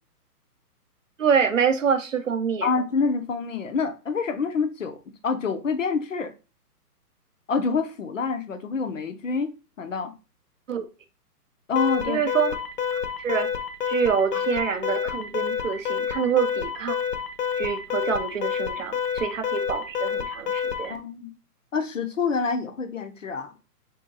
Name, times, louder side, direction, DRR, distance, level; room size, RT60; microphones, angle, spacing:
voice 1, 1.2-2.7 10.7-10.9 12.0-12.6 13.2-13.5 13.9-17.0 17.6-21.0, right 7 dB, 55° right, 0.5 m, -26 dB
voice 2, 2.6-6.3 7.5-10.1 11.7-12.2 20.9-21.3 21.7-23.6, left 5 dB, 55° left, 0.6 m, -27 dB
Alarm, 11.8-21.0, left 7 dB, 80° left, 1.0 m, -28 dB
3.7 x 2.8 x 3.7 m
hypercardioid pair, 180°, 47 cm